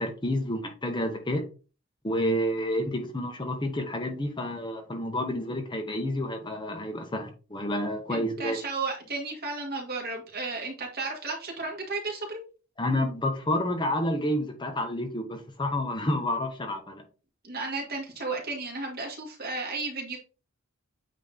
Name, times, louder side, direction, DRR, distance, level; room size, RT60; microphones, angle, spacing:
voice 1, 0.0-1.4 2.0-8.6 12.8-17.0, left 1 dB, 20° left, 3 dB, 1.0 m, -29 dB
voice 2, 8.1-12.4 17.4-20.2, right 3 dB, 45° right, 0 dB, 2.2 m, -33 dB
8.8 x 3.1 x 3.8 m, 0.34 s
head